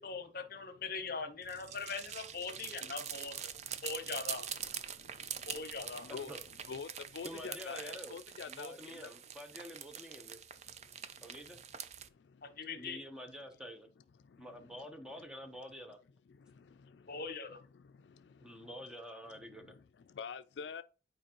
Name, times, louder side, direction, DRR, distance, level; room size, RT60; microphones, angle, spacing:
voice 1, 0.0-3.4 3.8-4.4 5.5-6.1 12.4-13.0 17.1-17.6, left 4 dB, 55° left, 0.9 m, -41 dB
sound 1, 1.4-12.1, right 9 dB, 40° right, 0.4 m, -45 dB
voice 2, 5.8-6.3 6.7-9.1 19.5-19.6 20.1-20.8, left 6 dB, 80° left, 0.4 m, -44 dB
voice 3, 7.2-8.2 8.5-10.4 11.2-11.6 12.8-13.9 14.4-16.0 18.4-19.7, equal, 5° right, 0.8 m, -48 dB
9.0 x 4.5 x 2.9 m
head